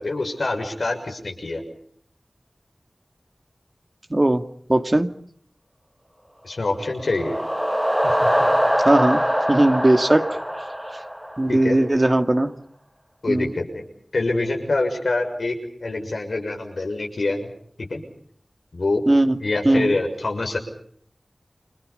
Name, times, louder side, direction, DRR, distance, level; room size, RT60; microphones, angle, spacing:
voice 1, 0.0-1.6 6.4-7.3 8.0-8.6 11.5-11.8 13.2-13.8 14.1-17.5 17.8-18.0 18.7-19.0 19.4-20.6, left 2 dB, 90° left, 2 dB, 6.8 m, -25 dB
voice 2, 4.1-4.4 4.7-5.1 8.9-9.2 9.5-10.4 11.4-12.5 13.3-13.5 19.1-19.3 19.6-20.0, right 1 dB, 35° right, 7 dB, 2.3 m, -18 dB
sound 1, 6.8-11.7, equal, 5° right, 1.6 m, -23 dB
29.5 x 27.0 x 5.4 m, 0.63 s
wide cardioid pair, 50°, 0 cm